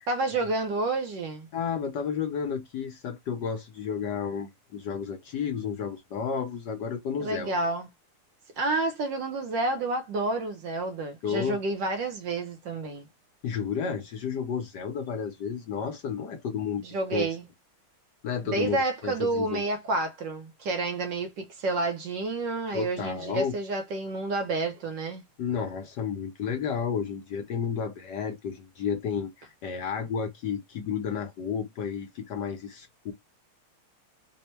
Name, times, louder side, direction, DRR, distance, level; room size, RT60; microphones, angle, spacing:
voice 1, 0.1-1.5 7.2-7.9 8.6-13.1 16.8-17.5 18.4-25.2, right 2 dB, 70° right, 1.3 m, -29 dB
voice 2, 1.5-7.5 11.2-11.6 13.4-16.8 17.1-17.3 18.2-18.8 19.0-19.6 22.7-23.5 25.4-33.1, left 7 dB, 70° left, 1.1 m, -32 dB
3.4 x 2.1 x 4.3 m
omnidirectional pair, 2.3 m